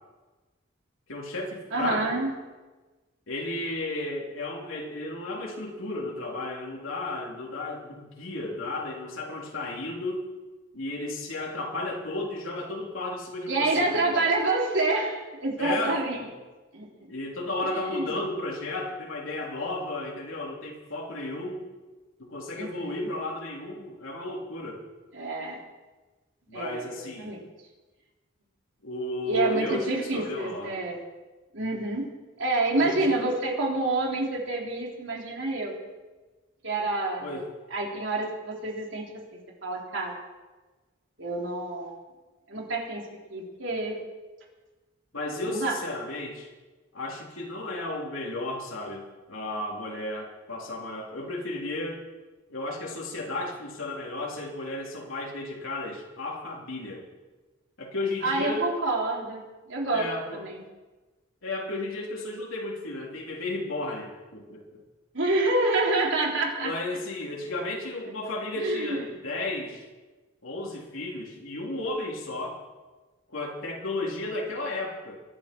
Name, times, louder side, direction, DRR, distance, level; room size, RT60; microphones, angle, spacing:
voice 1, 1.1-2.2 3.3-10.2 10.7-14.3 15.6-16.0 17.1-21.6 22.2-24.8 26.5-27.3 28.8-30.8 32.7-33.3 37.2-37.5 45.1-46.5 46.9-52.1 52.5-57.0 57.8-58.7 59.9-60.5 61.4-64.8 66.6-69.9 70.4-72.6 73.3-75.2, left 2 dB, 90° left, -2 dB, 3.4 m, -33 dB
voice 2, 1.7-2.3 13.5-16.2 16.7-16.9 17.6-18.2 22.5-23.1 25.1-25.6 26.5-26.9 27.2-27.4 29.3-31.0 31.5-32.0 32.4-35.7 36.6-37.4 37.7-39.1 39.6-40.1 41.2-42.0 42.5-43.0 43.3-44.0 45.4-45.8 58.2-59.4 59.7-60.1 60.3-60.6 65.1-66.7 68.6-69.0, right 2 dB, 70° right, -2 dB, 3.6 m, -27 dB
22.5 x 11.0 x 4.6 m, 1.2 s
head